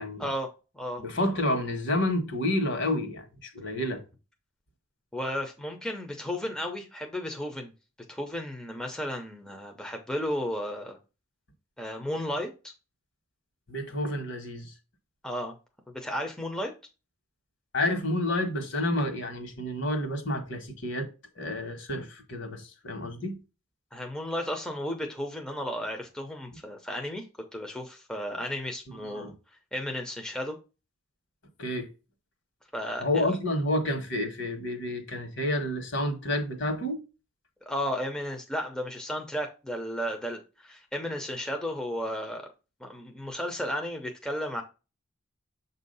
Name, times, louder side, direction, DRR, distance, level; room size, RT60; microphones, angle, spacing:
voice 1, 0.2-1.0 5.1-7.7 8.1-11.0 11.8-12.5 15.2-15.5 15.9-16.7 23.9-27.3 27.5-29.3 29.7-30.6 32.7-33.4 37.6-42.5 42.8-44.6, equal, 5° left, 0.7 m, -34 dB
voice 2, 1.0-4.0 13.7-14.7 17.7-21.1 21.4-23.4 29.1-29.3 31.6-31.9 33.0-37.0, left 1 dB, 60° left, 1.5 m, -29 dB
7.1 x 2.7 x 5.4 m
head